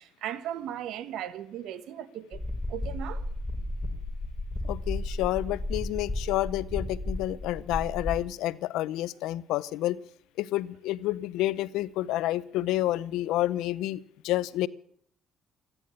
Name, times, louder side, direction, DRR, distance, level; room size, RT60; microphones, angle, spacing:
voice 1, 0.0-3.2, right 10 dB, 80° right, 1.3 m, -37 dB
sound 1, 2.3-8.2, left 1 dB, 15° left, 4.7 m, -33 dB
voice 2, 4.6-10.0 10.4-14.7, left 15 dB, 90° left, 0.6 m, -29 dB
14.5 x 11.0 x 8.9 m
cardioid pair, 90°, 0 cm